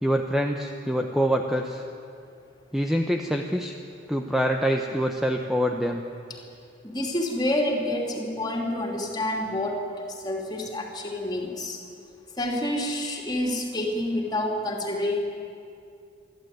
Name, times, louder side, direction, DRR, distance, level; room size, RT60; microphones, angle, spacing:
voice 1, 0.0-1.8 2.7-3.7 4.1-6.0, equal, ahead, 3 dB, 0.8 m, -25 dB
voice 2, 6.8-11.8 12.4-15.1, left 1 dB, 20° left, 0 dB, 2.8 m, -28 dB
27.5 x 11.5 x 9.3 m, 2.5 s
head